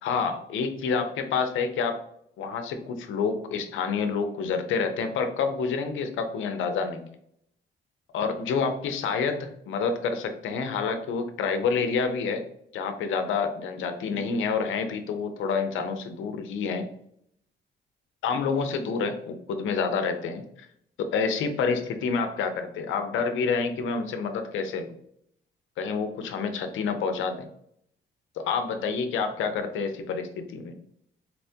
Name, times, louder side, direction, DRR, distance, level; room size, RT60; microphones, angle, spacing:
voice 1, 0.0-2.0 2.4-7.1 8.1-12.4 12.7-16.9 18.2-20.7 21.0-24.9 25.8-27.5 28.4-30.7, left 5 dB, 80° left, 7 dB, 0.6 m, -28 dB
4.2 x 2.1 x 2.7 m, 0.71 s
cardioid pair, 90°, 20 cm